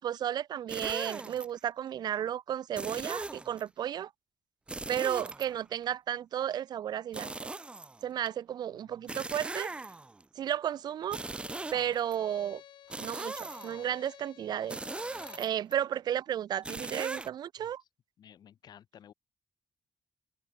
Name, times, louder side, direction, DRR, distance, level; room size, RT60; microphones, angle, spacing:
voice 1, 0.0-4.1 4.9-7.3 8.0-9.7 10.4-11.2 11.7-12.6 13.0-14.8 15.4-17.8, right 10 dB, 65° right, 1.0 m, -33 dB
sound 1, 0.7-1.4 2.7-3.6 4.7-5.9 7.1-8.3 9.1-10.2 11.0-12.2 12.9-13.9 14.7-15.7 16.6-17.3, right 2 dB, 15° right, 0.5 m, -39 dB
voice 2, 8.7-9.2 17.6-17.7 18.2-19.1, left 9 dB, 65° left, 5.5 m, -55 dB
Bowed string instrument, 11.0-15.5, left 11 dB, 90° left, 3.0 m, -53 dB
wide cardioid pair, 150°, 8 cm